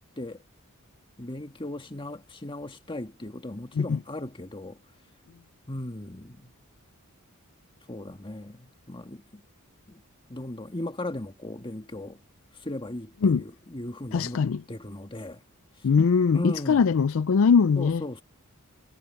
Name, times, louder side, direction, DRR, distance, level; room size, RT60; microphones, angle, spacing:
voice 1, 1.2-4.8 5.7-6.5 7.9-9.4 9.9-10.0 10.3-12.2 12.6-14.4 14.7-15.4 16.3-16.9 17.8-18.2, left 1 dB, 20° left, 1.8 m, -37 dB
voice 2, 14.1-14.6 15.8-18.0, left 5 dB, 60° left, 0.4 m, -21 dB
head